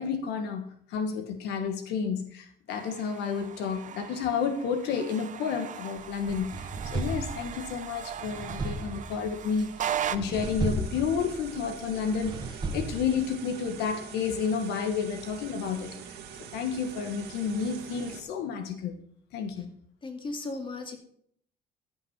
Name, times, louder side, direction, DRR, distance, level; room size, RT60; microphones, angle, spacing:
voice 1, 0.0-16.2 16.5-19.0 19.3-19.7, left 6 dB, 85° left, 6 dB, 1.3 m, -31 dB
sound 1, 2.7-10.2, right 10 dB, 50° right, 0.8 m, -38 dB
sound 2, 6.0-13.3, right 3 dB, 25° right, 1.5 m, -36 dB
sound 3, 10.3-18.2, right 8 dB, 80° right, 1.9 m, -44 dB
voice 2, 20.0-21.0, left 3 dB, 30° left, 4 dB, 2.3 m, -36 dB
14.5 x 5.9 x 5.8 m, 0.66 s
cardioid pair, 110°, 17 cm